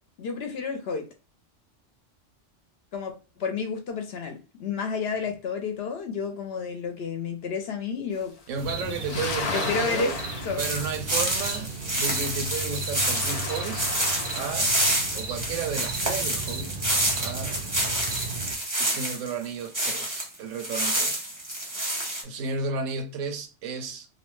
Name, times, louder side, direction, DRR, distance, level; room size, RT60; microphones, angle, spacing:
voice 1, 0.2-1.0 2.9-3.1 3.4-8.3 8.8-9.0 9.5-10.1 10.4-10.6, left 5 dB, 65° left, 0.7 m, -31 dB
sound 1, 8.5-8.6 9.0-12.0 12.6-15.1, left 4 dB, 80° left, 0.3 m, -35 dB
voice 2, 8.5-10.2 10.6-13.8 14.3-14.8 15.1-16.7 17.2-17.6 18.8-21.2 22.2-24.1, right 5 dB, 90° right, 1.0 m, -33 dB
sound 2, 8.6-18.6, right 3 dB, 60° right, 0.4 m, -36 dB
sound 3, 10.6-20.3 20.6-22.2, right 1 dB, 20° right, 0.6 m, -28 dB
2.6 x 2.1 x 3.0 m
omnidirectional pair, 1.3 m